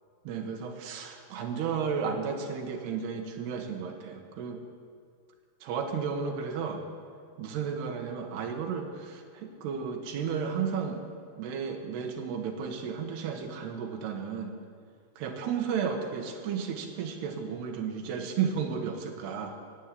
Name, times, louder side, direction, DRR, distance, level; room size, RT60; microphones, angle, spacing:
voice 1, 0.2-4.6 5.6-6.8 7.4-11.0 11.4-14.6 15.2-19.6, right 6 dB, 80° right, 4 dB, 3.3 m, -33 dB
15.5 x 9.0 x 8.3 m, 2.1 s
omnidirectional pair, 4.7 m